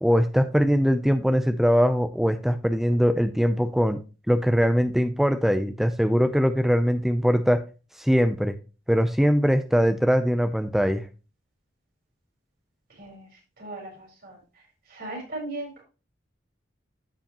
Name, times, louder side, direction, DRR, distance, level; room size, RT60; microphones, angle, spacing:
voice 1, 0.0-4.0 4.3-7.6 8.0-8.6 8.9-11.1, equal, ahead, 8 dB, 0.5 m, -21 dB
voice 2, 13.0-13.3 13.6-14.4 14.9-15.8, right 2 dB, 60° right, 0 dB, 4.5 m, -37 dB
14.0 x 4.8 x 2.9 m, 0.32 s
head